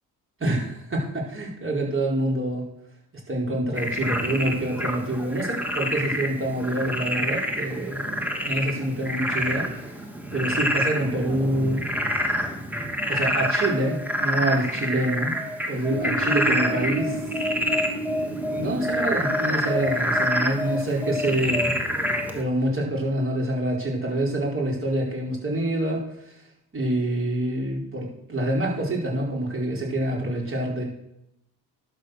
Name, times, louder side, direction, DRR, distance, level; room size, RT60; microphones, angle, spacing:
voice 1, 0.4-2.7 3.3-10.0 10.3-11.8 12.7-12.8 13.1-15.3 15.7-17.2 17.6-17.9 18.6-21.8 22.3-26.0 26.7-30.8, right 1 dB, 30° right, -2 dB, 4.5 m, -26 dB
Frog, 3.8-22.4, equal, 5° right, 2.3 m, -27 dB
sound 1, 15.9-22.1, right 2 dB, 85° right, 4.6 m, -34 dB
11.5 x 7.2 x 6.7 m, 0.81 s
cardioid pair, 75°, 40 cm